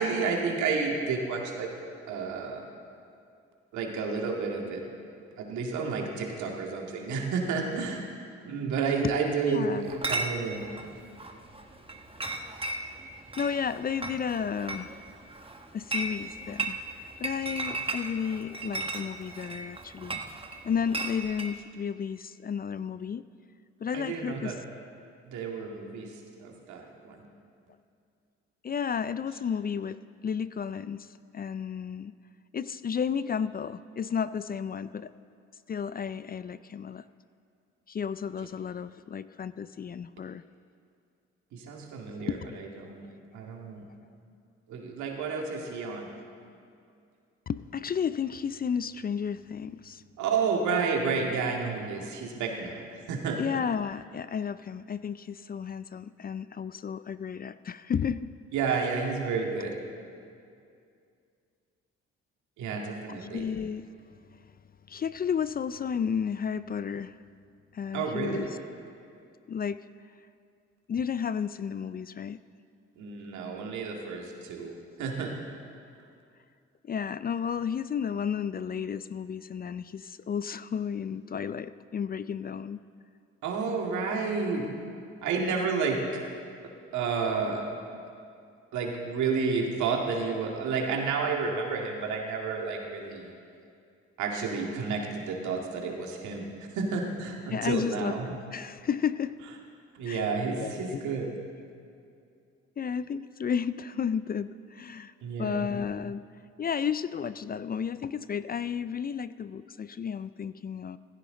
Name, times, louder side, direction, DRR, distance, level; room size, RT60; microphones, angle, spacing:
voice 1, 0.0-1.7 2.1-2.6 3.7-4.8 5.4-8.0 8.4-10.6 23.9-24.6 25.2-27.3 41.5-43.9 44.7-46.1 50.2-53.4 58.5-59.7 62.6-63.5 67.9-68.6 73.0-75.3 83.4-84.7 85.2-86.2 86.9-87.6 88.7-93.3 94.2-98.3 99.9-101.3 105.2-105.7, right 5 dB, 80° right, 0 dB, 2.2 m, -31 dB
voice 2, 9.5-9.9 13.4-14.9 15.7-23.2 23.8-24.5 28.6-31.1 31.3-32.1 32.5-35.1 35.7-37.0 37.9-40.4 42.2-42.6 47.5-50.0 53.4-58.3 58.6-58.9 63.1-63.9 64.9-67.2 67.7-68.5 69.5-69.8 70.9-72.4 76.8-82.8 97.5-99.4 100.1-101.4 102.8-106.2 106.6-111.0, left 7 dB, 30° left, 15 dB, 0.4 m, -32 dB
Chatter / Chink clink, 9.8-21.5, right 2 dB, 20° right, 1.3 m, -36 dB
16.0 x 15.5 x 3.9 m, 2.4 s
supercardioid pair, 60°, 29 cm